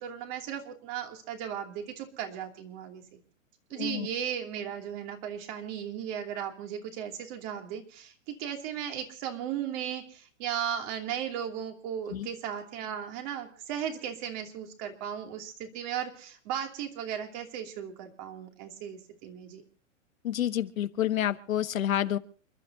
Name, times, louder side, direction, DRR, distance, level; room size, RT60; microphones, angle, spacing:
voice 1, 0.0-3.2 3.7-19.6, right 9 dB, 35° right, 3 dB, 2.8 m, -36 dB
voice 2, 3.7-4.1 12.1-12.3 20.2-22.2, left 11 dB, 85° left, 11 dB, 1.3 m, -29 dB
29.0 x 12.0 x 2.8 m, 0.43 s
hypercardioid pair, 160°, 40 cm